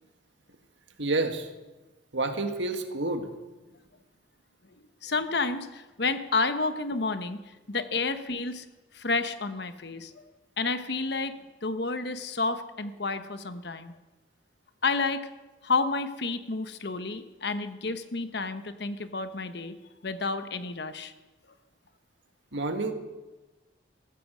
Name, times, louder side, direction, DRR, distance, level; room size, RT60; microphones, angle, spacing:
voice 1, 1.0-1.5 2.1-3.3 22.5-22.9, right 2 dB, 75° right, 6 dB, 1.7 m, -29 dB
voice 2, 5.0-7.4 7.7-8.6 8.9-10.2 10.6-14.0 14.8-15.3 15.6-19.7 20.0-21.1, left 3 dB, 60° left, 10 dB, 1.1 m, -30 dB
15.0 x 14.5 x 6.3 m, 1.1 s
head